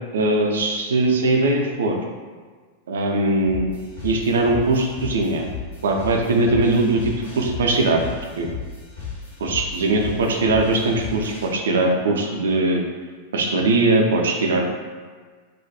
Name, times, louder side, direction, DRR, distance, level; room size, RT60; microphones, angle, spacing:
voice 1, 0.1-2.0 2.9-3.7 4.0-5.5 5.8-8.1 8.4-8.5 9.4-12.8 13.3-14.7, right 2 dB, 65° right, 1 dB, 0.3 m, -20 dB
sound 1, 3.5-11.5, left 5 dB, 70° left, 1.0 m, -35 dB
2.3 x 2.2 x 2.6 m, 1.5 s
figure-of-eight pair, 90°, 0 cm